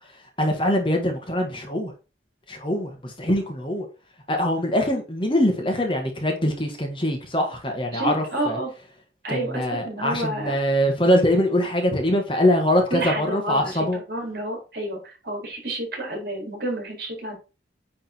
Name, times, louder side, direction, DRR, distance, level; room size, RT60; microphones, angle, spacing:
voice 1, 0.4-1.9 2.5-3.9 4.3-8.6 9.3-14.0, left 1 dB, 25° left, 1.6 m, -23 dB
voice 2, 7.9-8.7 9.2-10.6 12.9-17.4, right 1 dB, 55° right, 4.4 m, -30 dB
9.5 x 3.9 x 4.5 m
head